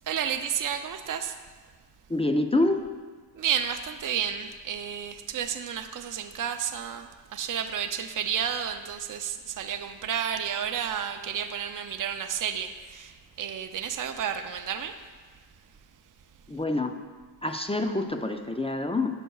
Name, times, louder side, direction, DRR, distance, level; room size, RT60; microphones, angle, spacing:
voice 1, 0.1-1.4 3.3-15.0, right 8 dB, 45° right, 7 dB, 0.5 m, -31 dB
voice 2, 2.1-2.9 16.5-17.0 17.4-19.2, left 2 dB, 15° left, 6 dB, 0.3 m, -26 dB
11.0 x 6.3 x 2.3 m, 1.4 s
wide cardioid pair, 85°, 45 cm